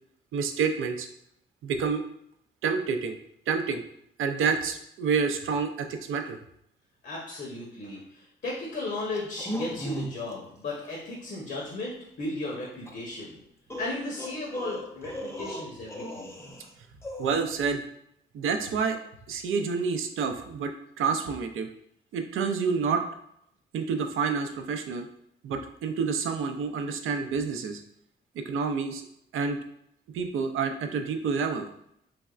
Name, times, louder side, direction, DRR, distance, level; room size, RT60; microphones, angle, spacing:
voice 1, 0.3-1.1 1.6-2.0 2.6-3.2 3.5-3.8 4.2-6.4 17.2-17.9 18.3-19.0 19.3-20.7 21.0-21.7 22.1-23.0 23.7-25.1 25.4-27.8 28.3-29.0 29.3-29.6 30.1-31.7, right 5 dB, 75° right, 5 dB, 0.5 m, -28 dB
voice 2, 7.0-13.4 13.8-16.3, left 2 dB, 55° left, -3 dB, 0.9 m, -35 dB
sound 1, 9.1-10.3 10.7-10.9 12.9-13.0 13.7-16.7 17.0-17.5, equal, 10° left, 0.6 m, -37 dB
3.4 x 3.1 x 2.4 m, 0.74 s
cardioid pair, 70°, 21 cm